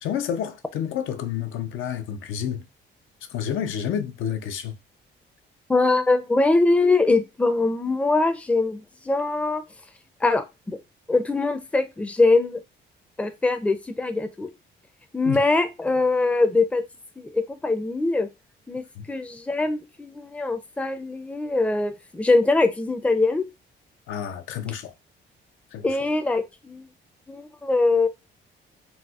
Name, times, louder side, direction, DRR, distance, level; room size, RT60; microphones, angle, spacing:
voice 1, 0.0-2.6 3.3-4.8 15.2-15.4 19.0-19.1 24.1-24.9 25.7-25.9, left 9 dB, 80° left, 0.5 m, -29 dB
voice 2, 5.7-9.6 10.2-10.8 11.1-12.6 13.2-14.5 15.1-16.8 17.2-18.3 18.7-18.8 19.1-23.4 25.8-26.9 27.3-28.1, left 3 dB, 5° left, 0.4 m, -22 dB
4.1 x 2.1 x 2.3 m
cardioid pair, 90°, 20 cm